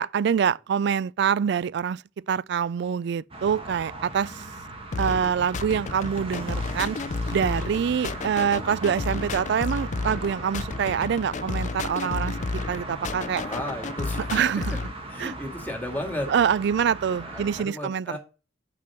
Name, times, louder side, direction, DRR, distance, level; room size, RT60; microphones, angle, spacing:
voice 1, 0.0-2.0 2.3-4.5 5.0-7.0 7.3-13.4 14.3-14.8 15.2-15.3 16.3-18.2, right 7 dB, 65° right, 0.3 m, -25 dB
sound 1, 3.3-17.6, right 2 dB, 30° right, 1.7 m, -39 dB
sound 2, 4.9-14.9, left 3 dB, 40° left, 0.4 m, -32 dB
sound 3, 5.1-12.3, right 1 dB, 15° right, 2.3 m, -56 dB
voice 2, 13.4-14.4 15.1-16.3 17.2-18.2, left 1 dB, 10° left, 2.3 m, -34 dB
6.2 x 6.0 x 5.9 m
head